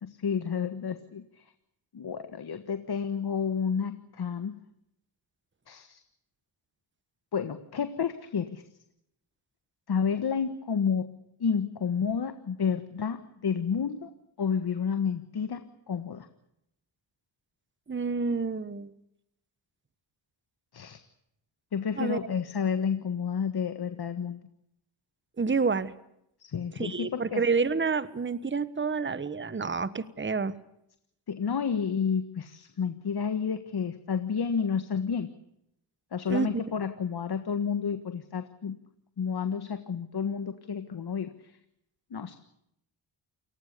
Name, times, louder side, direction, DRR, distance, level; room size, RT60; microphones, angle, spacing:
voice 1, 0.0-1.5 1.9-4.6 5.7-6.0 7.3-8.6 9.9-11.1 11.4-14.1 14.4-16.3 20.7-21.0 21.7-24.4 26.4-27.4 31.3-35.3 36.1-38.8 39.2-41.6 42.1-42.4, left 6 dB, 50° left, 10 dB, 1.6 m, -30 dB
voice 2, 17.9-18.9 22.0-22.2 25.4-25.9 26.7-30.6 36.3-36.5, right 4 dB, 25° right, 15 dB, 1.3 m, -28 dB
29.0 x 19.0 x 6.8 m, 0.78 s
cardioid pair, 75°, 48 cm